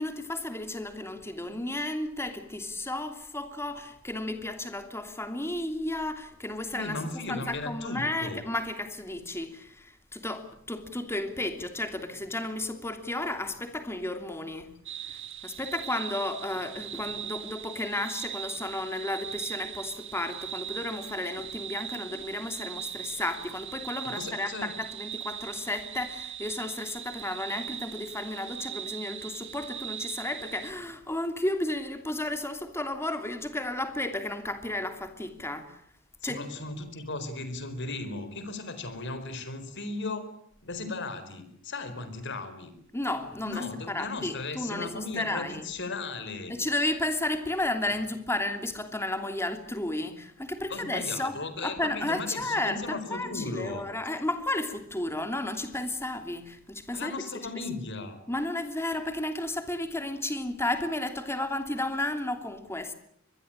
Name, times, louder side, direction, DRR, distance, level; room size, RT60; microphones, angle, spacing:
voice 1, 0.0-7.0 7.3-14.7 15.0-35.8 36.2-36.4 42.9-43.6 43.9-45.6 46.5-57.1 58.3-62.9, left 1 dB, 10° left, 2.9 m, -33 dB
voice 2, 6.7-8.4 24.0-24.7 36.2-40.3 40.6-42.7 43.4-46.6 50.7-53.8 56.9-58.2, left 3 dB, 60° left, 4.4 m, -36 dB
sound 1, 14.9-30.7, right 11 dB, 60° right, 1.3 m, -40 dB
24.5 x 21.5 x 8.9 m
head